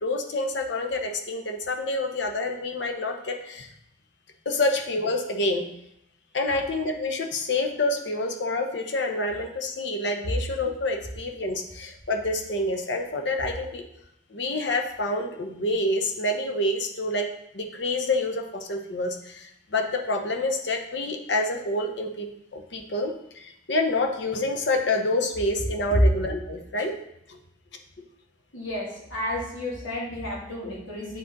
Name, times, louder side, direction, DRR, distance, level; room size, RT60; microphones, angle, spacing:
voice 1, 0.0-3.7 4.5-5.6 6.3-13.8 14.3-17.3 17.5-22.3 22.5-26.9 27.3-27.4 30.6-30.7, left 2 dB, 60° left, 3 dB, 0.8 m, -27 dB
voice 2, 28.5-31.2, left 1 dB, 90° left, -6 dB, 2.7 m, -33 dB
9.2 x 3.8 x 4.0 m, 0.78 s
head